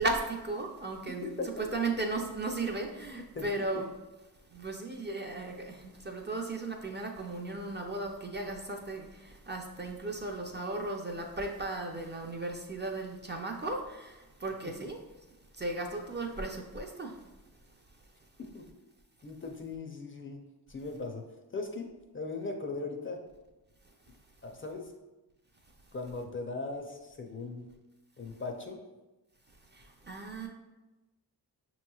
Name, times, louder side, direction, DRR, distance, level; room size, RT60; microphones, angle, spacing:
voice 1, 0.0-1.3 1.6-3.9 4.5-15.0 15.5-18.0 23.8-23.9 29.5-30.5, right 2 dB, 30° right, 1 dB, 0.4 m, -36 dB
voice 2, 3.3-3.8 18.4-18.7 19.2-21.3 21.5-23.2 24.4-24.9 25.9-27.7 28.2-28.8, left 3 dB, 30° left, 2 dB, 0.4 m, -39 dB
5.7 x 3.0 x 2.3 m, 1.1 s
wide cardioid pair, 100°, 39 cm